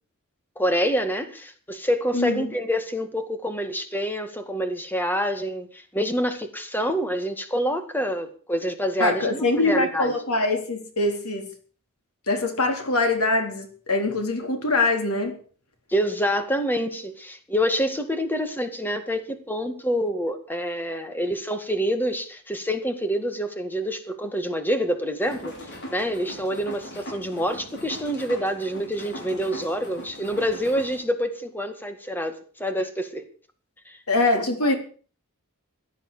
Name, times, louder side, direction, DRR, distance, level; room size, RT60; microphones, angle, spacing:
voice 1, 0.6-10.1 15.9-25.5 25.9-33.3 33.9-34.0, equal, 10° left, 2.0 m, -27 dB
voice 2, 2.1-2.4 9.0-11.5 12.3-15.4 34.1-34.7, left 2 dB, 80° left, 3.9 m, -23 dB
sound 1, 25.2-31.0, equal, 55° left, 4.6 m, -40 dB
16.0 x 11.0 x 6.8 m
head